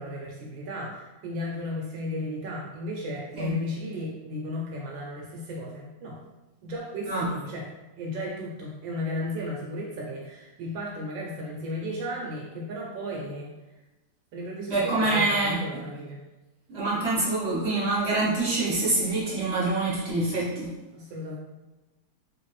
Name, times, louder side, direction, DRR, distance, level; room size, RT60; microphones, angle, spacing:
voice 1, 0.0-6.2 6.6-7.7 8.0-13.5 14.3-16.2 20.9-21.4, left 1 dB, 70° right, -2 dB, 1.3 m, -34 dB
voice 2, 14.7-15.6 16.7-20.7, right 2 dB, 40° right, -8 dB, 1.1 m, -26 dB
3.4 x 3.2 x 3.1 m, 1.1 s
omnidirectional pair, 2.3 m